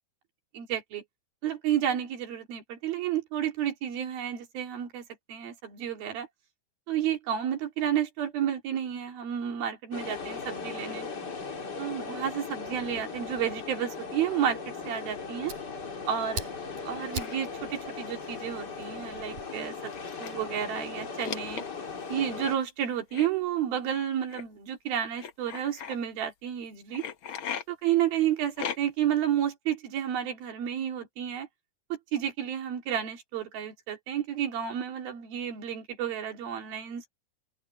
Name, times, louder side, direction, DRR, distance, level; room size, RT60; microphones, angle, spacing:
voice 1, 0.5-1.0 1.4-6.3 6.9-11.1 11.8-14.6 14.9-15.5 16.1-16.5 16.8-19.9 20.2-21.6 22.1-27.0 27.7-31.5 31.9-37.1, right 10 dB, 85° right, 4.6 m, -31 dB
sound 1, 9.9-22.6, left 5 dB, 30° left, 2.5 m, -38 dB
Fire, 14.9-19.4, right 4 dB, 60° right, 7.1 m, -43 dB
sound 2, 17.1-17.4 18.5-18.7 19.0-19.1 19.9-20.8 21.2-22.0 23.1-23.3 24.3-24.4 25.2-25.9 26.9-27.6 28.6-29.1, left 8 dB, 85° left, 1.1 m, -37 dB
open air
omnidirectional pair, 4.1 m